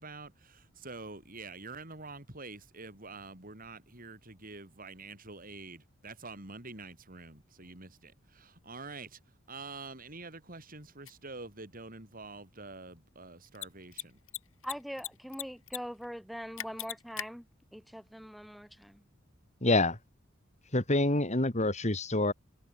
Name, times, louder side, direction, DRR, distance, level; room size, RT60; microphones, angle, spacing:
voice 1, 0.0-9.2 9.5-14.2, right 3 dB, 45° right, 6.1 m, -46 dB
Mechanisms, 11.0-11.1 13.5-13.7 13.9-14.0 14.3-15.1 15.3-15.8 16.0-16.1 16.6-17.2, left 12 dB, 85° left, 4.6 m, -37 dB
voice 2, 14.6-17.4 17.7-19.0, equal, ahead, 3.0 m, -42 dB
voice 3, 19.6-20.0 20.7-22.3, left 2 dB, 35° left, 3.4 m, -27 dB
head